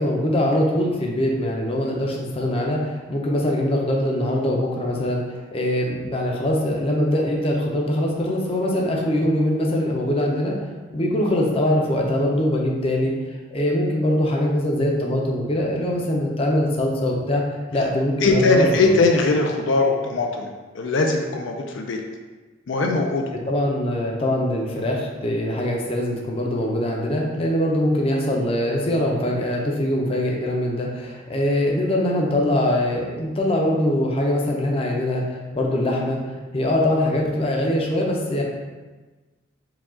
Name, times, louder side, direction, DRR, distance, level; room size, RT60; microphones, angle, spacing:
voice 1, 0.0-10.5 10.9-17.4 17.7-19.0 23.5-36.2 36.5-38.4, left 1 dB, 30° left, -1 dB, 0.5 m, -22 dB
voice 2, 18.2-20.5 20.7-22.0 22.7-23.3, left 3 dB, 80° left, 2 dB, 0.4 m, -20 dB
4.8 x 2.3 x 3.6 m, 1.3 s
head